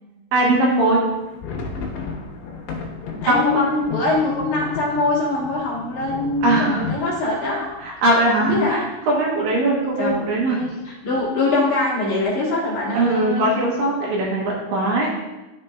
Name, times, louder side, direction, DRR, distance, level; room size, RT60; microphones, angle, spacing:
voice 1, 0.3-1.0 3.3-3.7 6.4-6.9 7.4-10.6 12.9-15.1, right 1 dB, 70° right, -3 dB, 2.6 m, -20 dB
sound 1, 1.1-8.8 9.1-9.2 9.5-9.7 10.2-10.7, left 5 dB, 85° left, 3.1 m, -34 dB
voice 2, 3.2-7.7 8.4-8.8 10.0-10.1 10.6-13.5, left 2 dB, 60° left, -7 dB, 2.6 m, -23 dB
12.0 x 4.4 x 2.2 m, 1.1 s
omnidirectional pair, 4.6 m